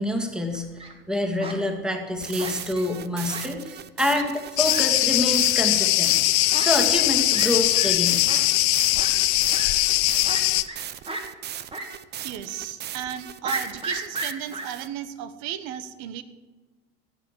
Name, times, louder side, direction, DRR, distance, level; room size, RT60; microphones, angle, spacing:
voice 1, 0.0-6.1 6.6-8.2, left 1 dB, 5° right, 4 dB, 2.2 m, -27 dB
Fowl, 0.5-0.9 1.4-1.6 2.4-2.9 3.3-3.4 3.8-3.9 4.1-4.2 4.7-4.8 5.5-5.6 6.5-6.7 6.9-7.1 7.3-7.5 7.7-7.9 8.3-8.4 9.0-9.1 9.5-9.7 10.3-10.8 11.1-11.2 11.7-11.9 12.2-12.3 13.4-14.7, right 2 dB, 20° right, 2.4 m, -33 dB
sound 1, 2.2-14.9, right 11 dB, 35° right, 0.8 m, -38 dB
Cricket, 4.6-10.6, left 19 dB, 60° left, 0.8 m, -21 dB
voice 2, 12.2-16.2, right 10 dB, 60° right, 12 dB, 1.4 m, -34 dB
15.5 x 9.1 x 7.4 m, 1.3 s
hypercardioid pair, 95°, 29 cm